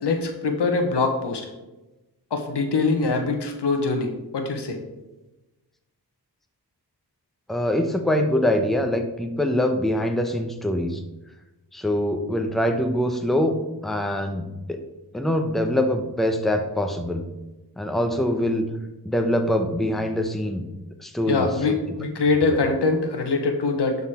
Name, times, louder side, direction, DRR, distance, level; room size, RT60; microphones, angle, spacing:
voice 1, 0.0-1.5 2.3-4.8 21.3-24.0, left 3 dB, 75° left, 5 dB, 1.2 m, -23 dB
voice 2, 7.5-11.0 11.7-13.6 13.8-14.8 15.1-17.2 17.8-18.7 19.0-20.6 21.0-21.8 22.5-22.6, left 1 dB, ahead, 5 dB, 0.9 m, -24 dB
11.0 x 4.1 x 4.3 m, 1.1 s
cardioid pair, 60°, 41 cm